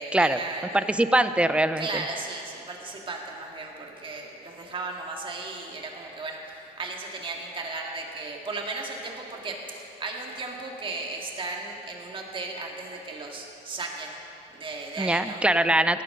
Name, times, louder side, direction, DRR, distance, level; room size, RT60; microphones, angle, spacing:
voice 1, 0.0-0.9 1.8-14.2 14.5-15.4, right 3 dB, 30° right, 0 dB, 2.0 m, -35 dB
voice 2, 0.7-2.0 15.0-16.0, right 1 dB, 5° right, 12 dB, 0.5 m, -22 dB
17.5 x 12.0 x 3.9 m, 2.9 s
cardioid pair, 110°, 17 cm